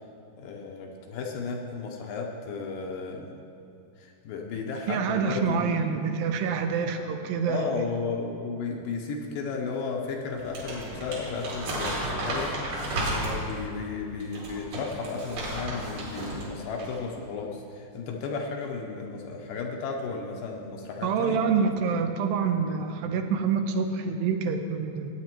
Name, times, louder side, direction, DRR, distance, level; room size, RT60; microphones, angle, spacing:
voice 1, 0.4-3.3 4.0-5.9 7.5-21.4, left 4 dB, 80° left, 0 dB, 2.2 m, -34 dB
voice 2, 4.9-7.9 21.0-25.2, right 6 dB, 80° right, 6 dB, 2.4 m, -27 dB
Crumpling crinkling, 10.4-13.6 14.2-16.5 16.8-17.0, right 1 dB, 65° right, 3.6 m, -33 dB
16.5 x 8.8 x 3.0 m, 2.6 s
omnidirectional pair, 4.3 m